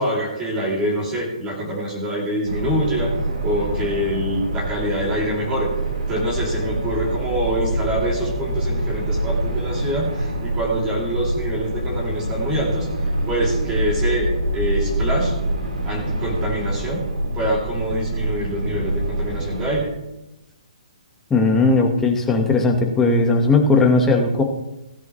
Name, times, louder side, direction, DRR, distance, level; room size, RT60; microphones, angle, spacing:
voice 1, 0.0-3.1 3.4-5.7 6.1-12.9 13.3-15.3 15.8-17.0 17.3-19.9, right 1 dB, 15° right, -3 dB, 3.0 m, -25 dB
sound 1, 2.5-19.7, right 1 dB, 85° right, 4.2 m, -25 dB
voice 2, 21.3-24.4, left 3 dB, 10° left, 2 dB, 1.4 m, -17 dB
16.5 x 10.5 x 3.2 m, 0.92 s
hypercardioid pair, 160°, 4 cm